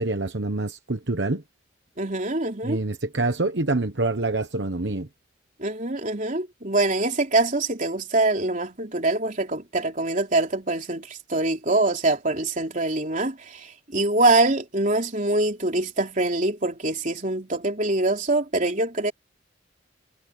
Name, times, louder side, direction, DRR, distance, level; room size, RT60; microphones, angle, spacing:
voice 1, 0.0-1.4 2.6-5.1, right 2 dB, 65° right, 1.1 m, -26 dB
voice 2, 2.0-2.8 5.6-19.1, right 2 dB, 40° right, 3.7 m, -24 dB
head